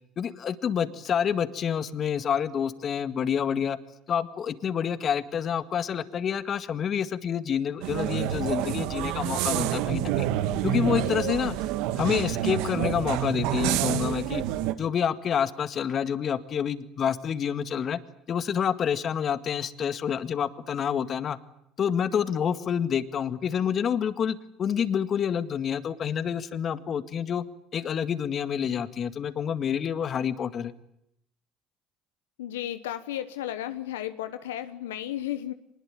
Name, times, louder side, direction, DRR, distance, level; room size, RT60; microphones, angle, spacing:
voice 1, 0.2-3.8 4.1-10.3 10.6-11.6 12.0-14.4 14.8-18.0 18.3-21.4 21.8-27.4 27.7-30.7, left 8 dB, 50° left, 12 dB, 1.9 m, -28 dB
sound 1, 7.8-14.7, right 12 dB, 75° right, 1.5 m, -28 dB
voice 2, 10.9-11.4 32.4-35.5, left 12 dB, 90° left, 10 dB, 1.1 m, -34 dB
25.0 x 21.0 x 9.1 m, 0.78 s
hypercardioid pair, 65°, 0 cm